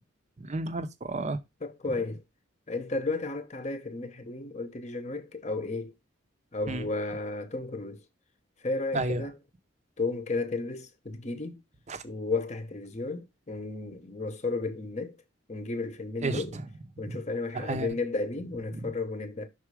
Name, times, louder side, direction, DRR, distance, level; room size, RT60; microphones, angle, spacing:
voice 1, 0.4-1.4 6.7-6.9 8.9-9.2 11.9-12.0 16.2-16.6 17.0-17.2 17.5-17.9 18.7-18.9, right 2 dB, 35° right, 0.6 m, -32 dB
voice 2, 1.6-2.2 2.7-5.9 6.5-8.0 8.6-9.4 10.0-11.6 12.0-15.2 15.5-16.5 17.0-19.5, left 3 dB, 35° left, 0.7 m, -33 dB
6.1 x 4.0 x 4.7 m
head